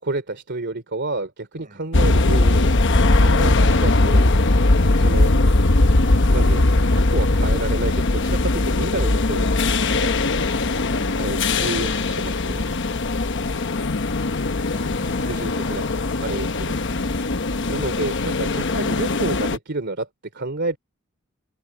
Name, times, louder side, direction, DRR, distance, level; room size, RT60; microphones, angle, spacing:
voice 1, 0.0-2.7 3.1-4.4 4.9-5.3 6.3-9.5 9.9-10.1 11.2-12.7 15.2-15.8 16.2-16.8 17.7-20.8, right 2 dB, 55° right, 3.0 m, -29 dB
voice 2, 1.5-1.9 10.9-12.1 14.7-15.7 16.9-17.8, right 2 dB, 40° right, 6.3 m, -47 dB
sound 1, 1.9-19.6, left 2 dB, 60° left, 1.1 m, -20 dB
open air
head